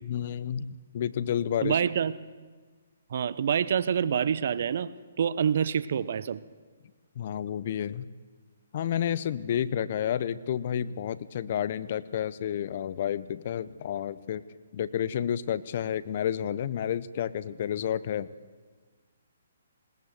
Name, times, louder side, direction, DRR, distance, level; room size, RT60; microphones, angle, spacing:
voice 1, 0.0-1.8 7.2-8.1 8.7-14.4 14.7-18.3, left 9 dB, 50° left, 16 dB, 0.8 m, -30 dB
voice 2, 1.6-2.2 3.1-4.9 5.2-6.4, right 8 dB, 55° right, 16 dB, 0.9 m, -26 dB
20.5 x 19.5 x 7.9 m, 1.4 s
figure-of-eight pair, 135°, 0 cm